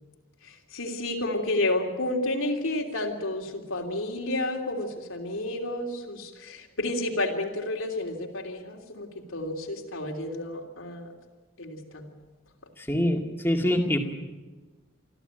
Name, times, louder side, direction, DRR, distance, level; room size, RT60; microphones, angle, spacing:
voice 1, 0.4-11.1 11.6-12.1, left 2 dB, 90° left, 1 dB, 3.2 m, -31 dB
voice 2, 12.8-14.0, left 1 dB, 10° left, 2 dB, 2.1 m, -25 dB
25.0 x 14.5 x 9.0 m, 1.3 s
head